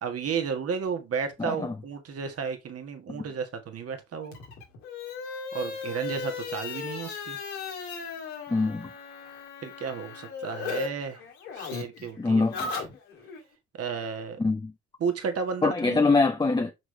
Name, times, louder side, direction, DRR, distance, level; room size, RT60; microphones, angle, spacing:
voice 1, 0.0-4.4 5.5-7.4 9.6-11.2 11.5-12.4 13.8-14.4 15.0-16.1, right 6 dB, 50° right, 1.7 m, -33 dB
voice 2, 1.4-1.7 3.1-3.3 8.5-8.9 12.2-12.7 14.4-14.7 15.6-16.7, left 3 dB, 15° left, 0.8 m, -24 dB
sound 1, 4.3-10.9 11.1-13.4, left 5 dB, 75° left, 1.9 m, -36 dB
6.2 x 4.8 x 3.3 m
figure-of-eight pair, 45°, 32 cm